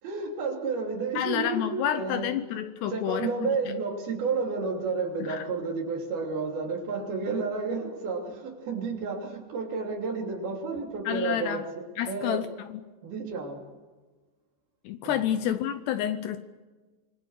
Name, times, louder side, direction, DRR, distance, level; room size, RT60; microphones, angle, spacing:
voice 1, 0.0-2.5 2.9-12.5 13.0-13.6 15.0-15.3, right 4 dB, 55° right, 1 dB, 4.8 m, -31 dB
voice 2, 1.2-3.6 5.3-5.4 11.1-11.6 12.0-12.8 14.9-16.4, left 10 dB, 75° left, 10 dB, 2.7 m, -29 dB
27.0 x 22.5 x 6.6 m, 1.3 s
omnidirectional pair, 5.4 m